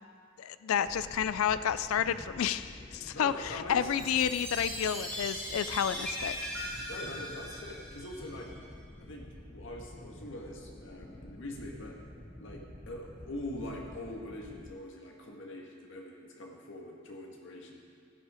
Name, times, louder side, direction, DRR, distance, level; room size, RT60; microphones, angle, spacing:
voice 1, 0.4-6.4, left 8 dB, 85° left, 13 dB, 0.4 m, -30 dB
sound 1, 0.8-14.7, left 1 dB, 25° left, 0.8 m, -49 dB
voice 2, 3.1-3.9 6.9-8.5 9.0-11.9 12.4-17.8, left 1 dB, 65° left, 0 dB, 1.7 m, -43 dB
Chime, 3.9-8.5, equal, 5° left, 3.6 m, -39 dB
15.0 x 8.0 x 5.0 m, 2.1 s
head